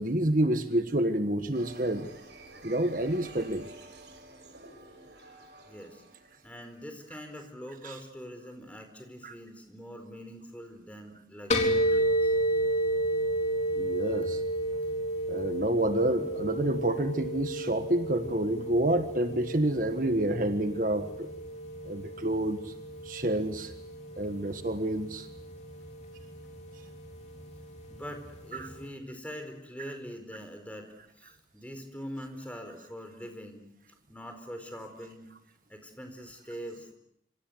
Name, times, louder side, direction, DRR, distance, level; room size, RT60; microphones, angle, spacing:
voice 1, 0.0-2.1 2.6-3.7 7.8-7.9 9.2-9.3 13.8-14.4 15.3-21.3 21.9-22.7 23.1-23.7 24.2-25.3 28.5-28.7, right 1 dB, 50° right, 8 dB, 1.6 m, -28 dB
sound 1, 1.5-7.1, right 2 dB, 75° right, 6.4 m, -50 dB
voice 2, 5.7-6.0 6.4-12.4 27.9-33.7 34.1-35.3 35.7-36.9, equal, 10° left, 6 dB, 4.4 m, -43 dB
sound 2, 11.5-28.9, right 1 dB, 40° left, 3.8 m, -32 dB
27.0 x 26.0 x 8.0 m, 0.78 s
head